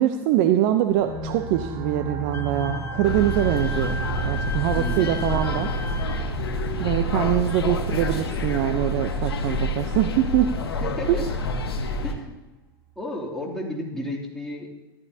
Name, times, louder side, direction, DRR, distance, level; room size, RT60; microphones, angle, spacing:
voice 1, 0.0-4.0 4.2-5.7 6.8-10.5 11.1-11.3, right 11 dB, 55° right, 8 dB, 0.7 m, -23 dB
sound 1, 0.9-12.2, right 5 dB, 35° right, 1.8 m, -35 dB
Wind instrument woodwind instrument, 2.3-6.3, left 4 dB, 20° left, 0.8 m, -36 dB
sound 2, 3.0-12.1, left 2 dB, 85° left, 1.4 m, -28 dB
voice 2, 3.6-4.0 4.7-5.1 7.2-7.3 10.8-11.2 12.0-12.4 13.0-14.8, left 1 dB, 5° left, -5 dB, 2.9 m, -33 dB
14.0 x 12.0 x 2.8 m, 1.1 s
hypercardioid pair, 90°, 13 cm